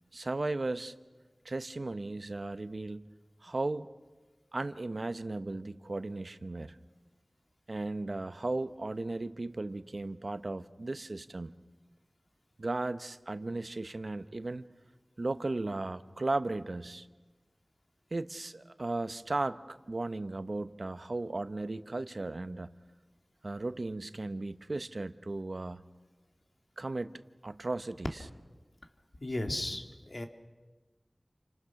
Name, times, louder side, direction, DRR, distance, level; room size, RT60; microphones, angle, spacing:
voice 1, 0.1-0.9 1.4-3.1 3.4-3.9 4.5-6.8 7.7-11.5 12.6-14.6 15.2-17.1 18.1-22.7 23.4-25.8 26.8-27.1 27.4-28.2, right 2 dB, 70° right, 11 dB, 0.8 m, -36 dB
voice 2, 29.2-30.3, left 1 dB, 55° left, 4 dB, 2.2 m, -35 dB
29.5 x 25.5 x 5.9 m, 1.2 s
wide cardioid pair, 55°, 0 cm